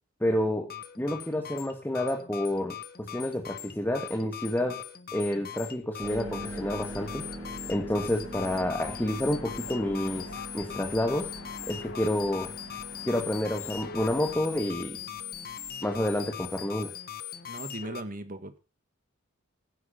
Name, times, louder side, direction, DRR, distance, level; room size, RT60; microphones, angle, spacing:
voice 1, 0.2-4.8 5.1-7.2 7.7-10.3 10.5-11.3 11.7-12.5 13.0-15.0 15.8-16.9, left 1 dB, 10° left, 1.7 m, -29 dB
sound 1, 0.6-18.0, left 9 dB, 45° left, 1.1 m, -41 dB
Harp, 6.0-16.6, equal, 15° right, 3.4 m, -43 dB
sound 2, 6.1-14.3, left 3 dB, 80° left, 3.3 m, -48 dB
voice 2, 17.5-18.6, right 1 dB, 40° right, 1.6 m, -38 dB
16.0 x 9.6 x 5.1 m
head